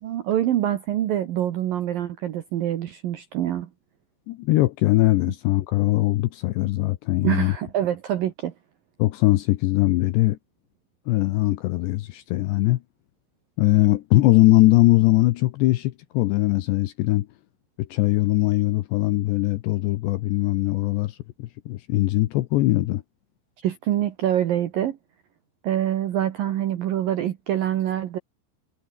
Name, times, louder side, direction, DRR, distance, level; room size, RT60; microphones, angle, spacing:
voice 1, 0.0-3.7 7.2-8.5 23.6-25.0 25.6-28.2, right 11 dB, 70° right, 2.2 m, -25 dB
voice 2, 4.3-7.5 9.0-10.4 11.1-12.8 13.6-17.3 17.8-23.0, left 17 dB, 80° left, 2.6 m, -21 dB
omnidirectional pair, 5.9 m